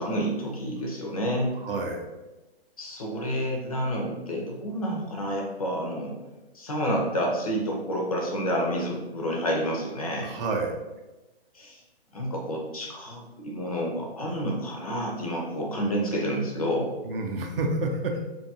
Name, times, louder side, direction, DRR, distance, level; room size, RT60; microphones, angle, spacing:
voice 1, 0.0-1.5 2.8-6.1 6.5-10.4 11.5-11.8 12.1-16.9, equal, 35° left, -1 dB, 0.4 m, -29 dB
voice 2, 1.5-2.1 10.2-10.8 17.0-18.3, right 2 dB, 60° right, 3 dB, 0.5 m, -29 dB
2.6 x 2.3 x 2.6 m, 1.1 s
hypercardioid pair, 165°, 32 cm